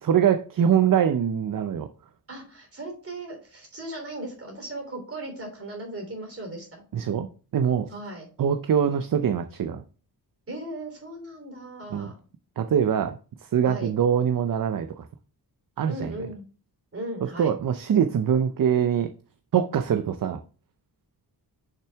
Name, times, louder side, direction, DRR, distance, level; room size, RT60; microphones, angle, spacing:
voice 1, 0.0-1.9 6.9-7.9 8.4-9.8 11.9-12.1 12.6-15.1 15.8-16.1 17.2-19.1 19.5-20.4, right 8 dB, 55° right, 0.5 m, -23 dB
voice 2, 2.3-6.8 7.9-8.3 10.5-12.2 13.6-13.9 15.9-16.4 16.9-17.6, right 1 dB, 35° right, 3.2 m, -37 dB
6.7 x 5.8 x 3.5 m
wide cardioid pair, 155°, 40 cm